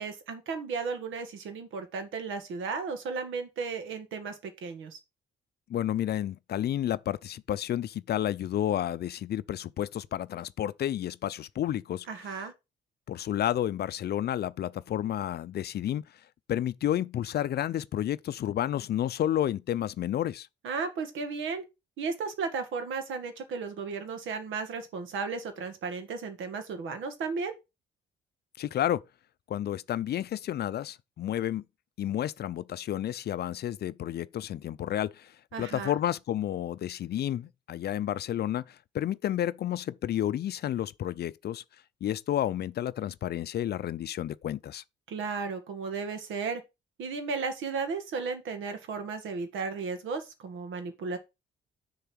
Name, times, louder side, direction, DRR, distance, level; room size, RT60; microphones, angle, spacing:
voice 1, 0.0-5.0 12.1-12.5 20.6-21.6 22.0-27.5 35.5-35.9 45.1-46.6 47.0-51.2, right 4 dB, 80° right, 1.8 m, -34 dB
voice 2, 5.7-12.1 13.1-16.0 16.5-20.5 28.6-29.0 29.5-31.6 32.0-35.3 35.6-41.6 42.0-44.8, left 11 dB, 55° left, 0.5 m, -31 dB
6.8 x 3.8 x 6.3 m
cardioid pair, 90°, 20 cm